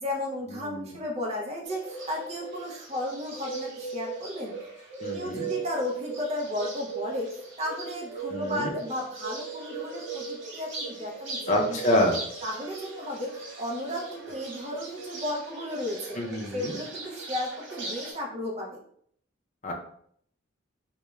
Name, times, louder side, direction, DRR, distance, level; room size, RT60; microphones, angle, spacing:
voice 1, 0.0-4.6 5.1-12.0 12.4-16.2 16.4-18.8, left 1 dB, 35° right, -2 dB, 0.5 m, -34 dB
Bird, 1.7-18.1, right 4 dB, 65° right, 0.8 m, -38 dB
voice 2, 5.0-5.5 8.3-8.7 11.5-12.2 16.2-16.7 19.6-19.7, left 1 dB, 40° left, 1 dB, 0.5 m, -26 dB
2.3 x 2.1 x 3.0 m, 0.64 s
head